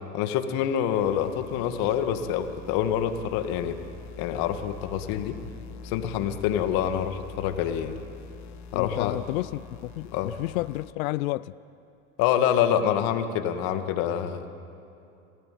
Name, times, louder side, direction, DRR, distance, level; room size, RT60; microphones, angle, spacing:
voice 1, 0.1-3.8 4.2-5.4 5.8-8.0 8.7-9.2 10.1-10.3 12.2-14.5, left 9 dB, 60° left, 2.0 m, -26 dB
sound 1, 0.9-10.9, left 5 dB, 40° left, 1.7 m, -44 dB
voice 2, 8.7-11.5, left 18 dB, 75° left, 0.6 m, -31 dB
26.0 x 16.5 x 9.3 m
hypercardioid pair, 90°, 42 cm